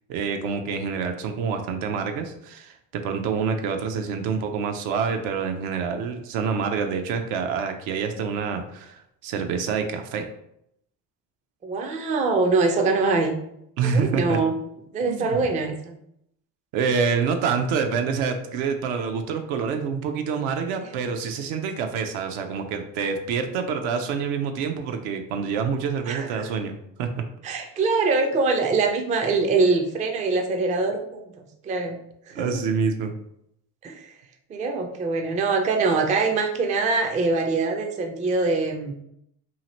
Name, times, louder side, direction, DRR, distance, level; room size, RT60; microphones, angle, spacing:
voice 1, 0.1-10.3 13.8-14.4 15.1-15.5 16.7-27.1 32.3-33.1, right 6 dB, 75° right, 5 dB, 0.6 m, -27 dB
voice 2, 11.6-13.4 13.8-14.5 14.9-16.0 26.1-26.5 27.4-32.0 32.3-32.6 33.8-34.1 34.5-38.9, right 3 dB, 20° right, 4 dB, 0.3 m, -24 dB
2.8 x 2.4 x 2.9 m, 0.76 s
hypercardioid pair, 70°, 48 cm